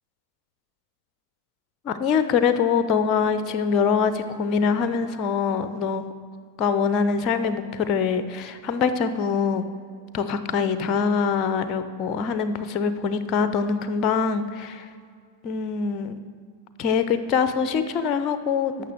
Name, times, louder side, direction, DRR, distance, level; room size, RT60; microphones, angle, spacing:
voice 1, 1.8-6.0 6.6-9.6 10.1-14.9 15.4-16.1 16.8-18.7, left 6 dB, 35° left, 11 dB, 0.7 m, -24 dB
11.5 x 6.6 x 6.5 m, 2.1 s
figure-of-eight pair, 90°, 0 cm